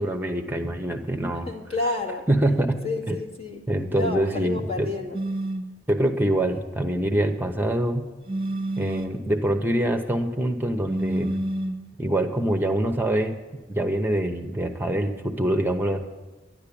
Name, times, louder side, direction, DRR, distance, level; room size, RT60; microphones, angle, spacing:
voice 1, 0.0-1.5 2.3-2.8 3.1-3.2 3.7-4.9 5.9-8.1 8.8-11.4 12.0-13.4 13.7-16.1, right 1 dB, 10° right, 5 dB, 0.9 m, -25 dB
voice 2, 1.5-2.3 2.8-3.6 3.9-5.2, left 3 dB, 35° left, -2 dB, 2.1 m, -30 dB
sound 1, 5.1-5.7 8.3-9.2 10.8-11.9, right 1 dB, 30° right, 1.3 m, -28 dB
11.0 x 11.0 x 8.6 m, 1.3 s
head